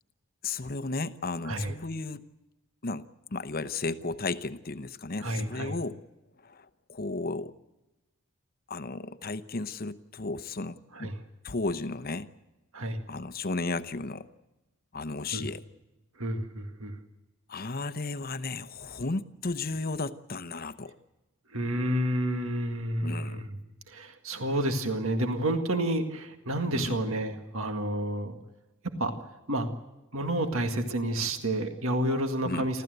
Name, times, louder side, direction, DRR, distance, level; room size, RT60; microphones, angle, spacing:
voice 1, 0.4-2.3 2.8-6.0 6.4-7.5 8.7-11.1 11.4-12.3 13.1-14.3 14.9-15.6 17.5-20.9 23.0-23.4 26.7-27.0 32.4-32.7, left 3 dB, 40° left, 12 dB, 0.8 m, -34 dB
voice 2, 5.2-5.7 10.9-11.2 12.7-13.0 15.3-15.5 16.2-17.0 21.5-23.6 23.9-28.4 29.0-29.1 29.5-29.7 30.1-32.8, right 1 dB, 65° right, 5 dB, 1.9 m, -30 dB
29.0 x 13.5 x 7.9 m, 1.0 s
head